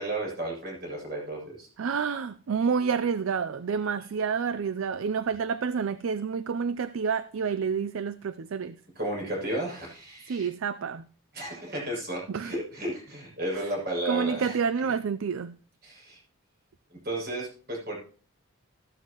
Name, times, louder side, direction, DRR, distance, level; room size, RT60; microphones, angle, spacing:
voice 1, 0.0-1.7 8.9-10.5 11.3-14.6 15.8-16.2 16.9-18.0, right 1 dB, 45° right, 6.5 m, -33 dB
voice 2, 1.8-8.8 10.3-11.1 12.3-12.5 13.5-13.6 14.1-15.5, right 6 dB, 65° right, 0.4 m, -29 dB
14.0 x 12.0 x 3.0 m
head